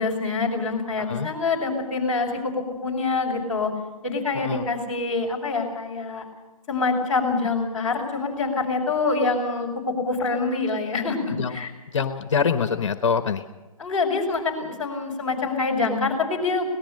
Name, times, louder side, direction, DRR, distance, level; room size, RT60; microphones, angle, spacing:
voice 1, 0.0-3.7 4.0-6.3 6.7-11.7 13.8-16.7, left 3 dB, ahead, -9 dB, 5.0 m, -25 dB
voice 2, 1.0-1.3 4.4-4.6 11.4-11.5 11.9-13.4, left 6 dB, 55° left, 9 dB, 1.2 m, -24 dB
24.0 x 19.0 x 6.7 m, 1.2 s
hypercardioid pair, 165°, 19 cm